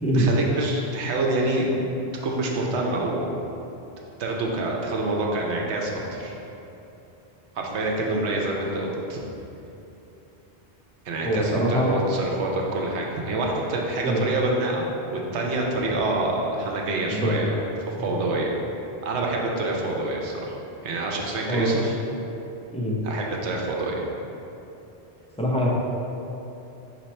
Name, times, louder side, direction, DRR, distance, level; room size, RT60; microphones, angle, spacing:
voice 1, 0.1-1.9 2.2-3.3 4.2-6.3 7.5-9.2 11.0-14.9 15.1-17.5 17.9-18.5 19.0-20.6 20.8-22.0 23.0-24.0, right 2 dB, 85° right, -1 dB, 1.0 m, -26 dB
voice 2, 11.2-11.9 14.0-14.2 17.1-17.4 21.5-21.7 22.7-23.0 25.4-25.7, equal, 10° left, -6 dB, 0.5 m, -23 dB
4.4 x 2.9 x 4.2 m, 3.0 s
omnidirectional pair, 1.1 m